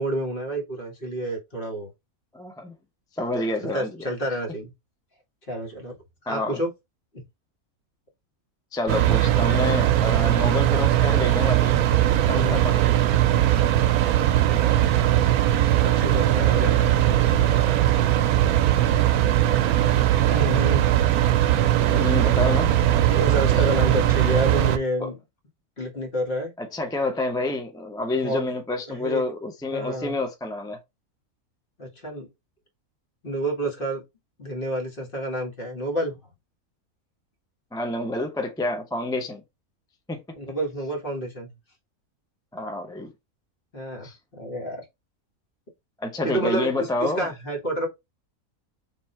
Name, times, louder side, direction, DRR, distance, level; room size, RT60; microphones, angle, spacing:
voice 1, 0.0-1.9 3.6-4.7 5.5-5.9 6.3-6.7 12.3-12.6 14.4-15.1 15.8-17.8 20.3-20.9 21.9-22.0 23.1-25.2 25.8-26.5 28.2-28.5 28.9-29.2 29.7-30.1 31.8-32.3 33.2-34.0 34.4-36.2 40.3-41.5 43.7-44.8 46.2-47.9, right 1 dB, 40° left, 1.5 m, -29 dB
voice 2, 2.3-2.7 3.2-4.1 6.3-6.6 8.7-11.8 12.3-13.0 21.8-22.7 25.0-25.1 26.6-30.8 37.7-39.4 40.1-40.2 42.5-43.1 44.0-44.2 46.0-47.3, left 2 dB, 5° left, 0.4 m, -28 dB
sound 1, 8.9-24.8, right 12 dB, 85° right, 1.1 m, -20 dB
3.7 x 3.0 x 4.2 m
omnidirectional pair, 1.5 m